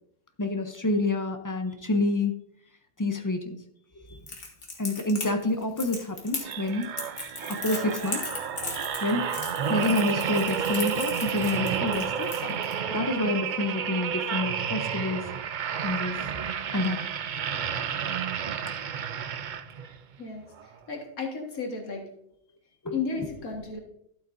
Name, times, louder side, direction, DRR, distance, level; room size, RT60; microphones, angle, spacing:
voice 1, 0.4-2.3 3.0-3.6 4.8-6.9 7.5-8.2 9.0-9.3 9.7-12.6 12.9-15.3 15.8-16.2 16.7-17.1 22.8-23.0, left 2 dB, 25° left, 6 dB, 0.4 m, -28 dB
Crackle, 4.3-12.7, left 3 dB, 60° left, 2.1 m, -37 dB
sound 1, 6.4-20.0 20.5-20.7, right 7 dB, 65° right, 0.4 m, -31 dB
voice 2, 20.9-22.0 22.9-23.8, left 4 dB, 85° left, 1 dB, 2.2 m, -34 dB
12.0 x 8.0 x 2.6 m, 0.74 s
omnidirectional pair, 1.5 m